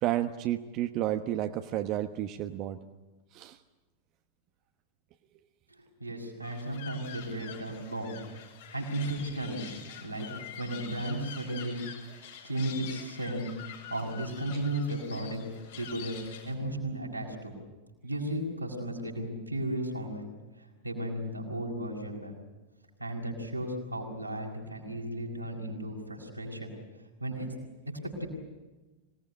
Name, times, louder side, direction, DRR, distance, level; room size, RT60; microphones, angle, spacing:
voice 1, 0.0-2.8 3.3-3.6, right 13 dB, 40° right, 7 dB, 1.1 m, -31 dB
voice 2, 6.0-8.2 8.7-9.7 10.0-10.3 10.6-11.7 12.4-13.4 13.9-15.4 15.8-16.2 16.4-17.5 18.0-20.3 20.8-22.3 23.0-26.7 27.2-27.5 28.0-28.3, right 1 dB, 85° right, 0 dB, 6.0 m, -34 dB
sound 1, 6.4-16.5, left 8 dB, 60° left, 5.5 m, -46 dB
26.0 x 19.0 x 10.0 m, 1.2 s
figure-of-eight pair, 90°, 0 cm